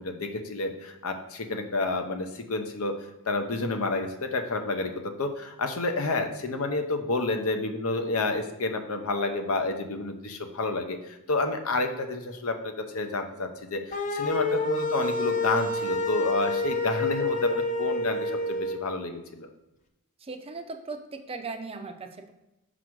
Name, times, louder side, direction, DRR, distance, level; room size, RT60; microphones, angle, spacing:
voice 1, 0.0-2.9 3.3-4.9 5.2-11.0 11.3-19.5, left 2 dB, 70° left, 6 dB, 0.8 m, -29 dB
sound 1, 13.9-18.8, left 2 dB, 35° left, 0.6 m, -28 dB
voice 2, 20.2-22.3, right 4 dB, 25° right, 5 dB, 0.5 m, -38 dB
6.0 x 4.0 x 4.6 m, 0.96 s
head